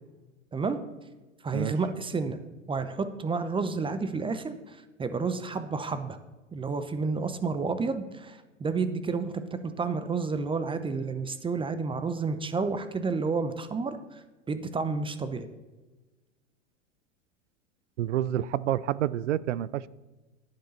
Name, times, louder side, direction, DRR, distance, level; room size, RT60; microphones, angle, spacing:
voice 1, 1.4-2.4 2.7-6.2 6.5-9.3 9.6-14.2 14.5-15.5, right 4 dB, 15° right, 0.8 m, -30 dB
voice 2, 18.0-19.9, right 12 dB, 70° right, 0.5 m, -28 dB
11.5 x 9.6 x 4.2 m
hypercardioid pair, 95°, 37 cm